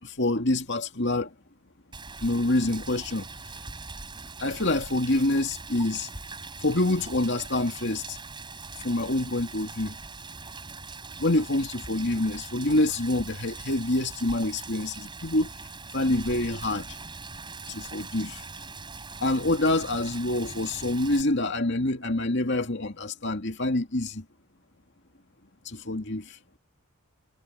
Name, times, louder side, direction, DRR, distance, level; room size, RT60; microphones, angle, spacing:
voice 1, 0.0-1.3 2.2-3.3 4.4-6.1 6.6-8.2 8.8-10.0 11.2-15.5 15.9-16.9 17.7-18.4 19.2-24.2 25.6-26.4, left 2 dB, 50° left, 2.4 m, -26 dB
Rain, 1.9-21.2, right 3 dB, 20° right, 5.6 m, -41 dB
head